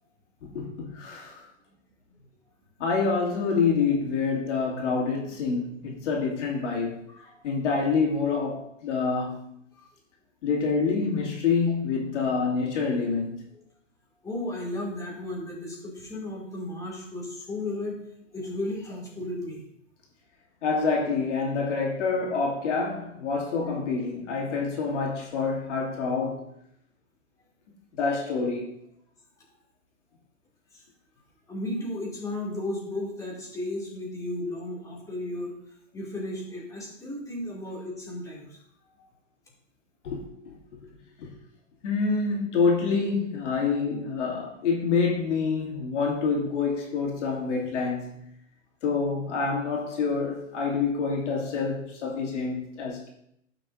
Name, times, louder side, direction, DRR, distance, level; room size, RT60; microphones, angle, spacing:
voice 1, 0.4-1.4 2.8-7.0 7.4-9.5 10.4-13.4 20.6-26.5 27.9-28.7 40.0-40.6 41.2-41.3 41.8-48.2 48.8-53.1, left 4 dB, 65° left, 2.8 m, -27 dB
voice 2, 14.2-18.0 18.3-19.6 30.7-30.8 31.5-35.5 35.9-38.5, left 1 dB, 10° left, 2.7 m, -34 dB
14.5 x 5.9 x 2.7 m
hypercardioid pair, 130°, 38 cm